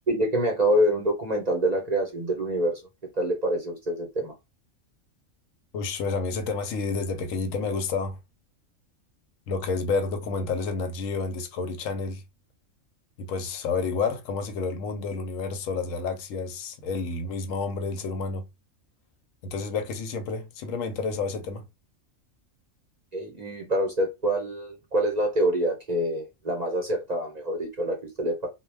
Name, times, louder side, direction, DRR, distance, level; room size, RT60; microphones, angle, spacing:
voice 1, 0.1-2.8 3.2-4.3 23.1-28.5, right 1 dB, 45° right, 0.6 m, -26 dB
voice 2, 5.7-8.2 9.5-12.2 13.2-18.4 19.4-21.7, left 4 dB, 90° left, 1.0 m, -30 dB
2.2 x 2.1 x 3.2 m
omnidirectional pair, 1.3 m